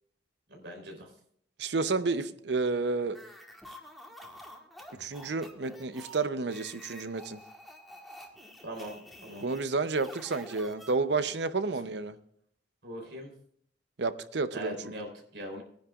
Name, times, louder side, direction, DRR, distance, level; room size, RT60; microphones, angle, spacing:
voice 1, 0.5-1.1 8.6-8.9 9.2-9.4 12.8-13.3 14.5-15.6, equal, 90° right, 2 dB, 3.7 m, -40 dB
voice 2, 1.6-3.2 5.0-7.4 9.4-12.2 14.0-14.8, right 3 dB, 75° right, 12 dB, 0.7 m, -30 dB
sound 1, 3.1-11.4, equal, ahead, 1.5 m, -49 dB
20.0 x 10.0 x 2.4 m, 0.67 s
head